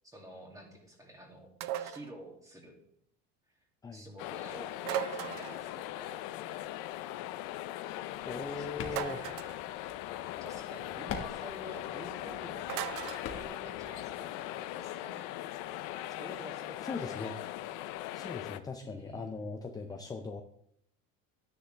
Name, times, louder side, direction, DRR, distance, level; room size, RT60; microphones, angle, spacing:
voice 1, 0.0-2.8 3.6-3.7 3.9-6.6 8.4-9.3 10.4-15.3 16.1-17.3 18.8-20.0, right 1 dB, 10° right, 0 dB, 2.4 m, -50 dB
sound 1, 1.6-2.1 4.8-5.7 8.9-9.6 12.7-13.3, right 11 dB, 65° right, 0.7 m, -36 dB
sound 2, 4.2-18.6, left 14 dB, 65° left, 0.7 m, -40 dB
sound 3, 8.1-14.1, left 6 dB, 40° left, 1.5 m, -46 dB
voice 2, 8.2-9.2 16.8-17.4 18.1-20.4, left 4 dB, 10° left, 5 dB, 0.5 m, -39 dB
11.5 x 10.0 x 3.4 m, 0.73 s
cardioid pair, 135°, 32 cm